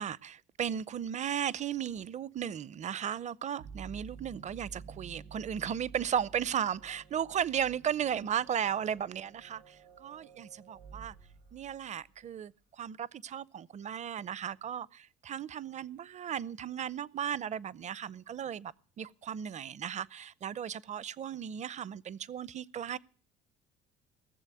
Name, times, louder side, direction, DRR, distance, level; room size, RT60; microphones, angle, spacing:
voice 1, 0.0-11.1 11.5-23.0, right 9 dB, 40° right, 0.6 m, -35 dB
sound 1, 3.6-12.2, right 5 dB, 90° right, 3.8 m, -52 dB
18.5 x 7.2 x 9.1 m
cardioid pair, 100°, 19 cm